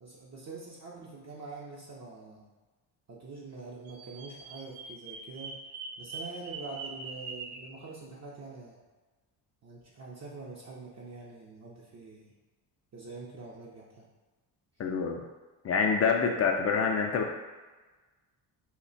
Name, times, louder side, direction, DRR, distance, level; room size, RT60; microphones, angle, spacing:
voice 1, 0.0-2.5 3.1-5.5 6.0-8.8 9.6-12.3 12.9-14.1, right 3 dB, 35° right, -5 dB, 0.6 m, -45 dB
Bird vocalization bird call bird song, 3.8-7.7, right 4 dB, 85° right, 0.6 m, -42 dB
voice 2, 14.8-15.2 15.6-17.3, left 5 dB, 35° left, 2 dB, 0.4 m, -26 dB
2.3 x 2.2 x 3.8 m, 1.3 s
supercardioid pair, 80°, 48 cm